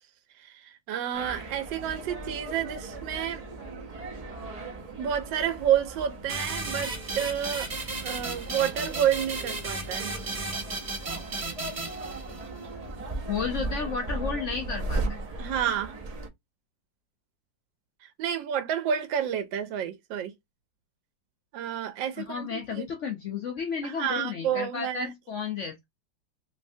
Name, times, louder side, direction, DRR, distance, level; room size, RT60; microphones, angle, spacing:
voice 1, 0.4-3.4 5.0-7.7 8.0-10.2 15.4-16.0 18.0-20.3 21.5-22.9 23.8-25.1, right 9 dB, 85° right, 1.3 m, -30 dB
sound 1, 1.1-16.3, right 2 dB, 50° right, 0.4 m, -37 dB
sound 2, 6.3-12.7, right 3 dB, 35° right, 0.9 m, -35 dB
voice 2, 13.3-15.2 22.2-25.8, left 6 dB, 65° left, 0.7 m, -32 dB
3.2 x 3.1 x 2.6 m
omnidirectional pair, 2.0 m